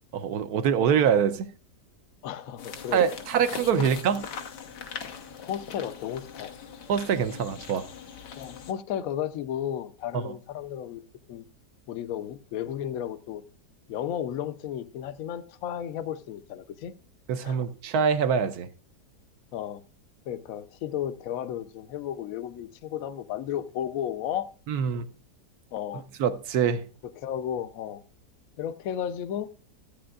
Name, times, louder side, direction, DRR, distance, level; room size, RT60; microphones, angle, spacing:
voice 1, 0.1-1.5 2.9-4.2 6.9-7.9 10.1-10.3 17.3-18.7 24.7-25.1 26.2-26.8, right 7 dB, 70° right, 1.1 m, -24 dB
voice 2, 2.2-3.1 3.8-3.9 5.4-6.5 8.3-11.0 11.3-11.4 11.9-13.4 13.9-16.9 17.4-17.6 19.5-19.8 20.3-24.5 25.7-26.0 27.2-28.0 28.6-29.5, left 10 dB, 65° left, 1.0 m, -33 dB
sound 1, 2.6-8.7, left 6 dB, 85° left, 1.6 m, -41 dB
14.0 x 8.7 x 2.3 m
omnidirectional pair, 1.8 m